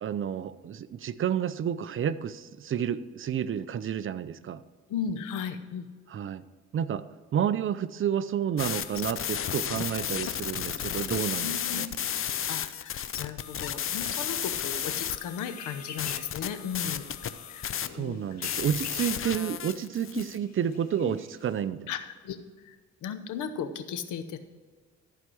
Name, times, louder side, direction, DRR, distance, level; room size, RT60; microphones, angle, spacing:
voice 1, 0.0-4.6 6.1-6.4 6.7-7.1 7.3-11.9 17.9-21.9, right 9 dB, 45° right, 15 dB, 0.5 m, -30 dB
voice 2, 4.9-5.9 11.4-11.9 12.5-17.1 17.5-18.2 20.1-20.2 21.0-21.1 21.9-24.4, left 7 dB, 80° left, 10 dB, 0.9 m, -36 dB
sound 1, 8.6-20.4, left 9 dB, 45° left, 0.6 m, -33 dB
sound 2, 14.5-21.6, left 4 dB, 60° left, 1.7 m, -50 dB
14.0 x 4.7 x 6.3 m, 1.4 s
cardioid pair, 90°, 30 cm